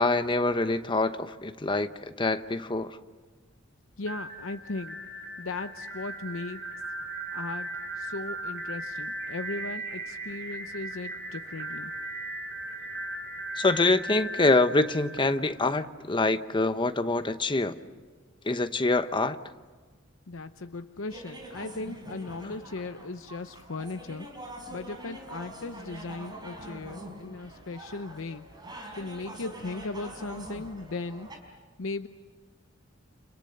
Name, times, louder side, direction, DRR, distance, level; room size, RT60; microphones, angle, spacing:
voice 1, 0.0-3.0 13.6-17.8 18.4-19.4, left 2 dB, 25° left, 10 dB, 0.9 m, -25 dB
voice 2, 4.0-5.0 5.4-6.8 7.3-7.7 8.0-11.9 20.3-24.3 24.7-28.5 28.9-31.3 31.8-32.1, left 3 dB, 85° left, 8 dB, 0.8 m, -37 dB
sound 1, 4.0-15.9, right 2 dB, 60° right, 5.3 m, -38 dB
sound 2, 21.1-31.4, right 1 dB, 20° right, 4.9 m, -44 dB
30.0 x 28.5 x 6.7 m, 1.4 s
head